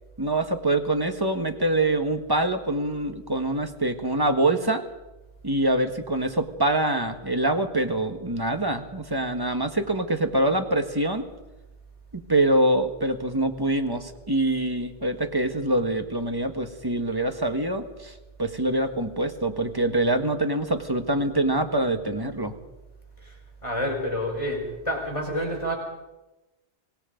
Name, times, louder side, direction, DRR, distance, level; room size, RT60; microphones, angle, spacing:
voice 1, 0.2-4.8 5.4-11.3 12.1-18.1 18.4-22.6, right 1 dB, 20° right, 6 dB, 1.6 m, -25 dB
voice 2, 23.6-25.7, equal, 30° left, 0 dB, 5.1 m, -28 dB
25.5 x 19.5 x 5.3 m, 1.0 s
omnidirectional pair, 1.1 m